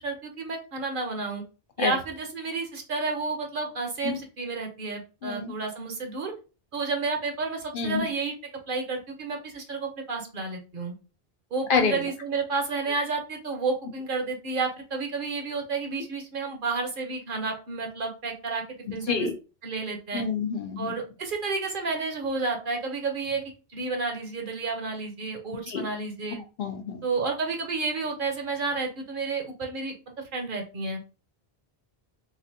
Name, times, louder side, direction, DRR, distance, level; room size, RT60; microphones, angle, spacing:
voice 1, 0.0-1.4 1.8-6.3 6.7-8.3 8.7-10.9 11.5-18.6 18.9-19.3 19.6-20.2 20.8-23.4 23.7-26.4 27.0-29.9 30.3-31.0, right 4 dB, 60° right, 3 dB, 0.9 m, -31 dB
voice 2, 5.2-5.5 7.7-8.1 11.7-12.0 18.9-19.3 20.1-20.9 25.5-25.8 26.6-27.0, left 5 dB, 65° left, 6 dB, 0.7 m, -28 dB
3.9 x 2.5 x 2.7 m, 0.33 s
omnidirectional pair, 1.0 m